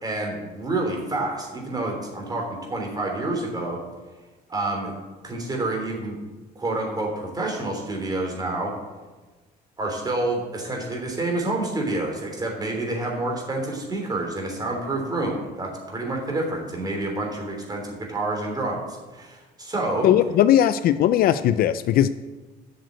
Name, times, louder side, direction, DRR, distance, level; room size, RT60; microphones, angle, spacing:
voice 1, 0.0-3.8 4.5-4.9 5.2-6.2 6.5-8.7 9.8-20.1, right 2 dB, 25° right, 1 dB, 3.2 m, -28 dB
voice 2, 20.0-22.1, left 11 dB, 60° left, 13 dB, 0.4 m, -18 dB
7.9 x 6.7 x 8.0 m, 1.3 s
cardioid pair, 110°, 17 cm